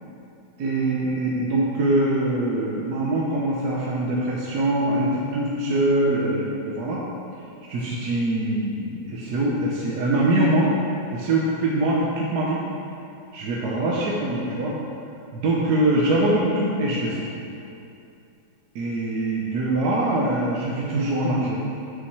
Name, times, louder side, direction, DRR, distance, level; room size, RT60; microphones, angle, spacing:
voice 1, 0.6-7.0 7.7-10.7 11.1-12.6 13.3-14.8 15.3-17.3 18.7-21.6, right 1 dB, 65° right, -4 dB, 1.2 m, -23 dB
6.3 x 5.8 x 4.7 m, 2.6 s
omnidirectional pair, 2.0 m